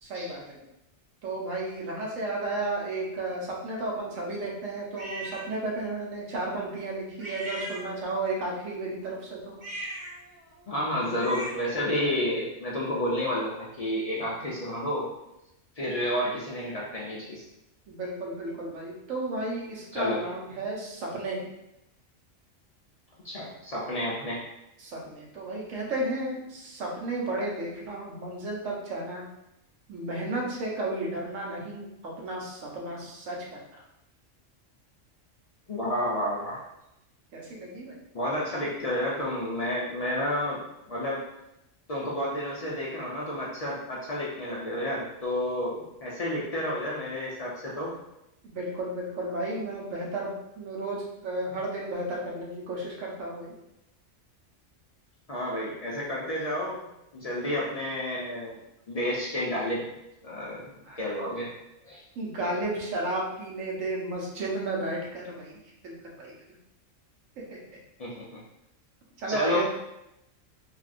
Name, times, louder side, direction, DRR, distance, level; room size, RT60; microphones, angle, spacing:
voice 1, 0.0-0.6 1.2-9.5 17.9-21.4 24.8-29.2 29.9-33.8 37.3-38.0 48.4-53.5 60.8-61.0 62.2-66.3 67.4-67.6 69.2-69.6, right 2 dB, 85° right, -3 dB, 1.2 m, -33 dB
sound 1, 5.0-5.5 7.2-8.3 9.5-11.8, right 1 dB, 25° right, 0.8 m, -39 dB
voice 2, 10.7-15.1 15.8-17.4 19.9-20.2 23.2-24.4 35.7-36.6 38.1-40.6 40.9-41.2 41.9-47.9 55.3-56.8 57.1-58.6 58.9-59.9 60.2-61.5 61.9-62.0 68.0-68.2 69.3-69.6, left 1 dB, 65° left, -6 dB, 0.3 m, -30 dB
3.4 x 2.3 x 2.5 m, 0.86 s
omnidirectional pair, 1.3 m